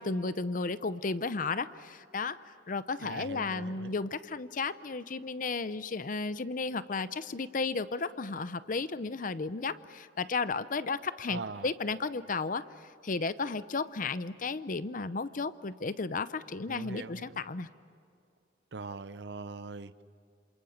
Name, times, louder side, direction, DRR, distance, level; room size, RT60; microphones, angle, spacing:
voice 1, 0.0-12.6 13.0-17.7, left 4 dB, 50° left, 14 dB, 0.7 m, -34 dB
voice 2, 3.0-4.0 11.3-11.7 16.7-17.4 18.7-20.0, right 4 dB, 70° right, 13 dB, 0.7 m, -41 dB
28.0 x 27.0 x 7.2 m, 2.5 s
head